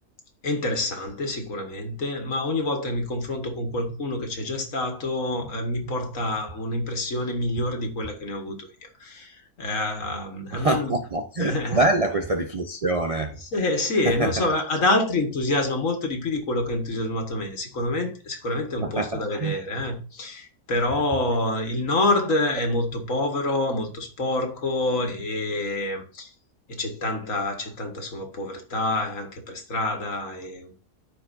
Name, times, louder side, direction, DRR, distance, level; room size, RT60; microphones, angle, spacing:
voice 1, 0.4-11.0 11.4-11.8 13.4-26.3 26.7-30.8, left 2 dB, 55° left, 2.0 m, -27 dB
voice 2, 10.5-13.3 14.0-14.5 18.8-19.5, right 2 dB, 35° right, 0.6 m, -25 dB
14.0 x 4.8 x 2.6 m
omnidirectional pair, 1.6 m